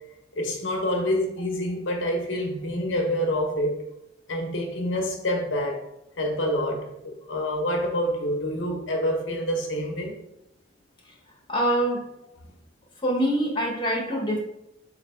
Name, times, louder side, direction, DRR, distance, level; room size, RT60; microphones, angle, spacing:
voice 1, 0.3-3.8 4.3-5.8 6.2-10.1, equal, 90° left, 2 dB, 0.7 m, -27 dB
voice 2, 11.5-12.1 13.0-14.4, equal, 25° left, -2 dB, 0.9 m, -24 dB
3.2 x 2.7 x 4.2 m, 0.83 s
head